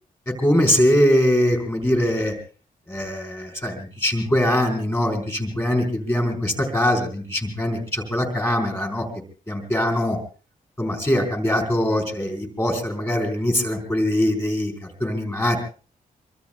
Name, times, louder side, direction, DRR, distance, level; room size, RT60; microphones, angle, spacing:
voice 1, 0.4-2.3 2.9-9.1 9.5-10.2 10.8-15.6, left 1 dB, 15° left, 3 dB, 4.3 m, -22 dB
25.0 x 24.0 x 2.2 m, 0.37 s
wide cardioid pair, 175°, 15 cm